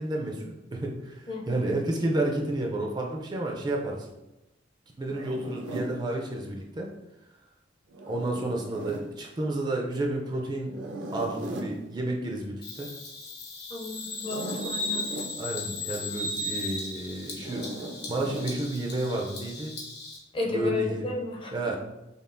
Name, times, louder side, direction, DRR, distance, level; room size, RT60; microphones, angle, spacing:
voice 1, 0.0-4.1 5.0-6.9 8.1-10.8 11.1-12.9 15.4-19.7 20.5-21.1 21.5-21.8, right 2 dB, 25° right, 0 dB, 0.4 m, -31 dB
voice 2, 1.3-1.6 13.7-15.1 20.3-21.5, left 3 dB, 30° left, 0 dB, 0.5 m, -32 dB
Zipper (clothing), 5.1-5.9 7.9-9.1 10.7-11.8 14.1-15.3 17.4-18.5, right 1 dB, 80° right, 0.6 m, -38 dB
Bird vocalization bird call bird song, 12.6-20.2, left 2 dB, 60° left, 0.9 m, -36 dB
5.3 x 2.3 x 2.5 m, 0.95 s
head